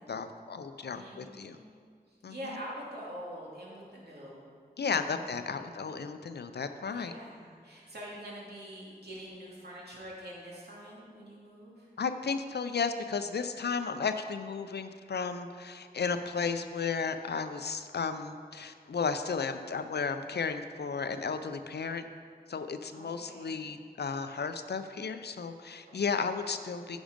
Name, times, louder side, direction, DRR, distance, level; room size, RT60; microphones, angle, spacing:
voice 1, 0.1-1.6 2.2-2.4 4.8-7.1 12.0-22.0 22.5-27.0, left 5 dB, 80° left, 9 dB, 0.5 m, -34 dB
voice 2, 0.9-1.7 2.1-4.5 4.9-5.7 6.8-11.9 22.9-23.6 26.0-26.3, equal, 75° right, -6 dB, 2.7 m, -45 dB
10.0 x 6.2 x 5.2 m, 2.1 s
wide cardioid pair, 50°, 17 cm